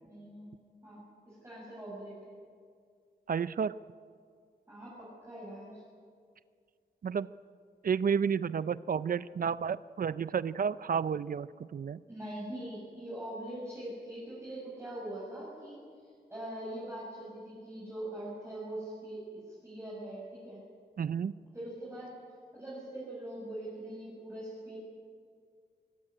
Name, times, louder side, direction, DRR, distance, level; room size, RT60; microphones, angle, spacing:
voice 1, 0.0-0.5 0.8-2.3 4.7-5.8 12.1-20.6 21.5-22.1 22.5-24.8, right 1 dB, 15° right, -8 dB, 7.5 m, -42 dB
voice 2, 3.3-3.7 7.0-7.3 7.8-12.0 21.0-21.3, right 7 dB, 55° right, 16 dB, 0.5 m, -31 dB
23.0 x 17.0 x 9.9 m, 2.1 s
wide cardioid pair, 125°, 18 cm